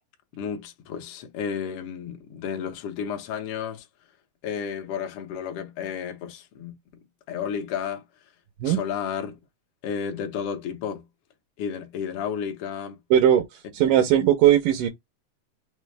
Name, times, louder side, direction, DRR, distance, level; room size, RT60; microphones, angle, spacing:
voice 1, 0.3-3.9 4.4-6.8 7.3-8.0 8.6-9.4 9.8-11.0 11.6-13.0, left 7 dB, 75° left, 1.3 m, -32 dB
voice 2, 13.1-13.4 13.7-14.9, right 10 dB, 85° right, 2.4 m, -18 dB
5.5 x 2.0 x 3.3 m
omnidirectional pair, 3.7 m